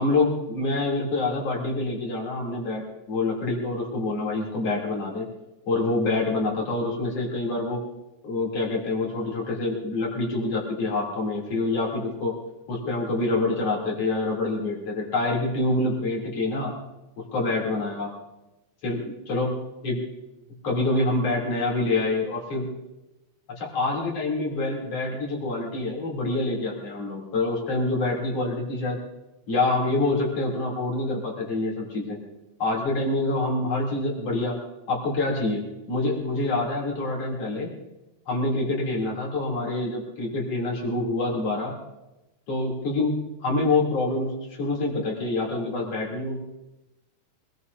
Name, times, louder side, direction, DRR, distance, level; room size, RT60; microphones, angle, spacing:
voice 1, 0.0-5.3 5.7-7.8 8.2-12.4 12.7-16.7 17.3-18.1 18.8-19.5 19.8-20.0 20.6-22.7 23.5-29.0 29.5-32.2 32.6-34.6 34.9-37.7 38.3-41.8 42.5-46.4, left 2 dB, 50° left, -2 dB, 4.1 m, -26 dB
24.5 x 20.5 x 2.7 m, 0.96 s
omnidirectional pair, 3.5 m